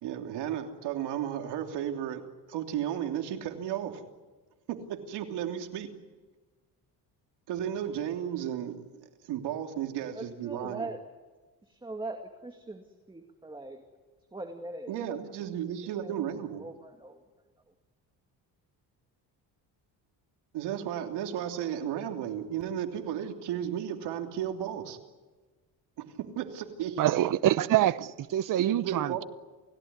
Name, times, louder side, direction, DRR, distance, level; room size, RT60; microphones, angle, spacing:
voice 1, 0.0-4.0 4.7-5.9 7.5-10.9 14.9-16.6 20.5-25.0 26.0-27.0 28.6-29.2, right 10 dB, 80° right, 3.2 m, -34 dB
voice 2, 10.1-11.0 11.7-13.8 14.3-14.9 15.5-15.6 16.0-17.2, right 2 dB, 10° right, 2.2 m, -41 dB
voice 3, 27.0-29.2, right 12 dB, 50° right, 0.9 m, -26 dB
29.5 x 17.0 x 9.6 m
cardioid pair, 120°, 40 cm